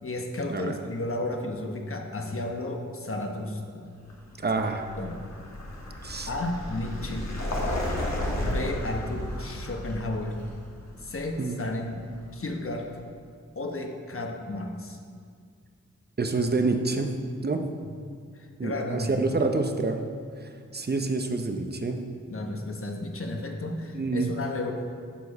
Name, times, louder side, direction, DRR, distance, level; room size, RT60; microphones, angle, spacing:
voice 1, 0.0-3.9 4.5-4.7 5.0-5.2 6.3-7.3 8.4-10.4 11.0-12.0 12.3-12.9 13.6-15.0 18.4-19.2 22.3-24.9, left 2 dB, 50° left, 3 dB, 1.0 m, -33 dB
Vehicle, 4.0-12.8, left 1 dB, 65° left, 1.4 m, -34 dB
voice 2, 4.4-4.8 6.0-6.3 11.4-11.6 16.2-17.1 17.4-17.7 18.6-20.0 20.4-22.0 23.9-24.3, right 3 dB, 35° right, 6 dB, 0.7 m, -27 dB
11.0 x 4.7 x 4.2 m, 2.1 s
cardioid pair, 60°, 29 cm